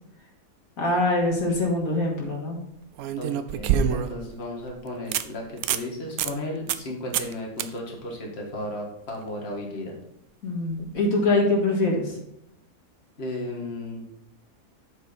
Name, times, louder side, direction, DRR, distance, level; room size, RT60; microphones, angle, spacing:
voice 1, 0.8-2.6 10.4-12.2, left 2 dB, 75° left, -1 dB, 2.2 m, -23 dB
sound 1, 1.2-1.6 3.0-4.3 4.7-4.8 5.1-5.2 5.6-5.9 6.2-6.3 6.7-6.9 7.1-7.3 7.6-7.7 10.8-10.9, right 8 dB, 90° right, 1.1 m, -26 dB
voice 2, 3.2-10.0 13.2-14.1, left 1 dB, 45° left, -1 dB, 2.0 m, -34 dB
8.1 x 6.1 x 4.3 m, 0.81 s
omnidirectional pair, 1.5 m